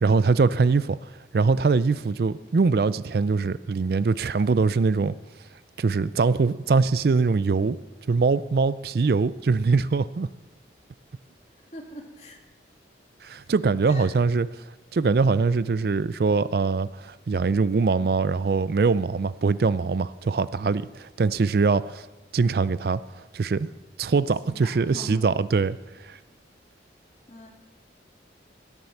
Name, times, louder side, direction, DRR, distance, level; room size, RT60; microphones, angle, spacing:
voice 1, 0.0-1.0 1.3-5.1 5.8-7.8 8.1-10.3 13.2-14.5 14.9-22.1 22.3-23.0 23.3-23.7 24.0-25.8 26.0-26.2, right 4 dB, 55° right, 0.4 m, -22 dB
voice 2, 11.7-12.4 13.3-13.5 13.8-14.1 24.4-25.3 27.3-27.5, equal, 35° left, 2.4 m, -42 dB
16.0 x 9.7 x 7.1 m
head